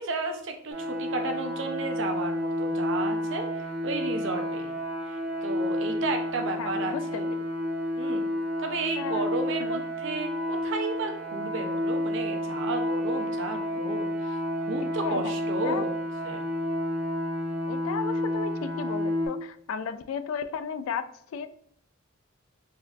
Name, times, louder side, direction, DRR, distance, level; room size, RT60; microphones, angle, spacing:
voice 1, 0.0-4.8 5.1-7.3 8.0-8.3 8.6-14.4 14.7-15.9 16.2-16.4, right 3 dB, 65° right, 5 dB, 0.6 m, -33 dB
sound 1, 0.7-19.3, left 1 dB, 35° right, 0.8 m, -30 dB
voice 2, 6.4-7.2 9.0-9.3 9.6-9.8 15.0-15.3 15.6-15.8 17.7-21.0 21.3-21.5, left 6 dB, 80° left, 12 dB, 0.3 m, -34 dB
4.2 x 2.6 x 2.4 m, 0.65 s
head